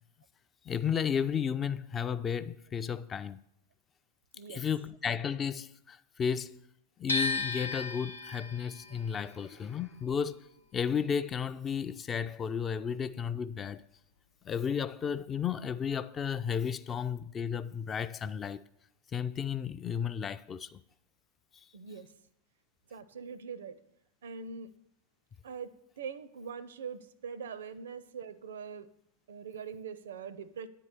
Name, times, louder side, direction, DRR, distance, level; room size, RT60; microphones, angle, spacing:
voice 1, 0.7-3.4 4.5-6.6 7.0-10.5 10.7-13.8 14.4-18.6 19.1-20.8, left 7 dB, 25° left, 0.3 m, -33 dB
voice 2, 4.3-4.7 21.7-22.1 22.9-23.8 24.2-24.7 25.4-25.7 26.0-28.9 29.3-30.7, right 6 dB, 65° right, 0.5 m, -42 dB
sound 1, 7.1-13.1 13.4-14.7, left 3 dB, 90° left, 0.8 m, -37 dB
9.6 x 4.6 x 6.8 m
figure-of-eight pair, 90°, 0 cm